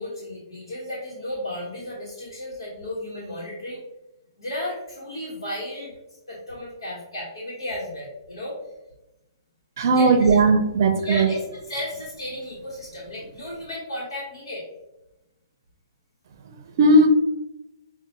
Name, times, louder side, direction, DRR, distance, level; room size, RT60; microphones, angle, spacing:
voice 1, 0.0-3.8 4.4-6.0 6.3-8.6 9.9-10.4 11.0-14.7, left 1 dB, 85° left, -6 dB, 1.1 m, -34 dB
voice 2, 9.8-11.3 16.8-17.1, right 2 dB, 50° right, 6 dB, 0.5 m, -17 dB
5.6 x 2.2 x 2.7 m, 0.97 s
hypercardioid pair, 140°, 2 cm